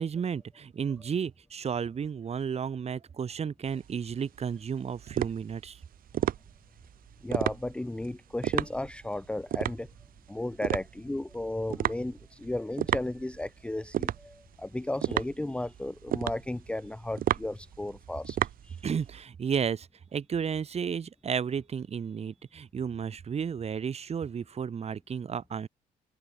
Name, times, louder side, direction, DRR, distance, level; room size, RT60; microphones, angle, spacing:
voice 1, 0.0-5.8 18.8-25.7, right 7 dB, 40° right, 3.1 m, -33 dB
sound 1, 3.7-19.2, right 11 dB, 55° right, 2.0 m, -33 dB
voice 2, 7.2-9.9 10.3-18.4 18.6-18.8, left 1 dB, 5° left, 0.8 m, -34 dB
cardioid pair, 110°, 17 cm